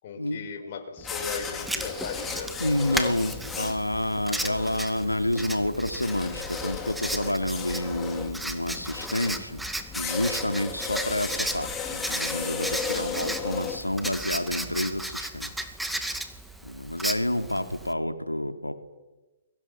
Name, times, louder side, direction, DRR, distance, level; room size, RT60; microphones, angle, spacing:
voice 1, 0.0-2.5 13.4-13.8, left 5 dB, 45° left, 3 dB, 6.0 m, -37 dB
sound 1, 1.0-14.8, left 5 dB, 15° left, 3.5 m, -36 dB
Writing, 1.6-17.9, right 1 dB, 5° right, 2.2 m, -35 dB
voice 2, 2.6-9.6 9.9-15.7 16.6-18.7, left 1 dB, 90° left, 8 dB, 2.8 m, -29 dB
29.5 x 23.0 x 7.2 m, 1.1 s
figure-of-eight pair, 120°, 0 cm